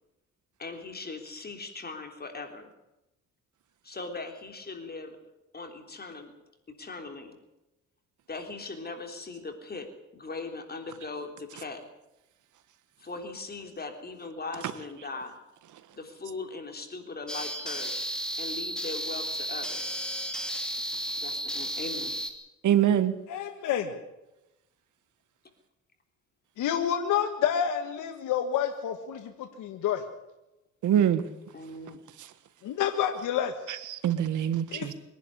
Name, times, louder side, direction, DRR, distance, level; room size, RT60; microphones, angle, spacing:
voice 1, 0.6-2.7 3.8-5.2 5.5-6.3 6.7-7.4 8.3-11.9 13.0-15.4 15.9-18.0 18.4-20.0 21.2-22.1 31.5-32.0, left 3 dB, 30° left, 5 dB, 3.4 m, -39 dB
sound 1, 17.3-22.3, equal, 5° left, 2.8 m, -33 dB
voice 2, 22.6-23.1 30.8-31.2 32.2-32.3 33.7-34.9, right 10 dB, 75° right, 13 dB, 1.5 m, -24 dB
voice 3, 23.3-24.0 26.6-30.0 32.6-33.5 34.7-34.9, left 9 dB, 85° left, 6 dB, 1.7 m, -29 dB
24.0 x 11.0 x 9.8 m, 0.94 s
cardioid pair, 90°, 30 cm